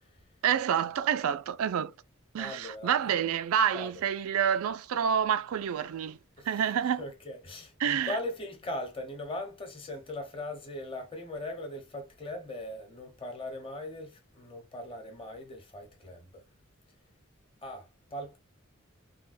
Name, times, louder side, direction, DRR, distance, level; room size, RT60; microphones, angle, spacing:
voice 1, 0.4-1.9 2.3-6.2 6.5-7.0 7.8-8.2, right 8 dB, 90° right, 0.3 m, -28 dB
voice 2, 2.4-3.1 3.7-3.9 6.4-6.6 7.0-16.4 17.6-17.9 18.1-18.4, left 1 dB, 25° left, 0.9 m, -39 dB
3.3 x 2.2 x 2.6 m
head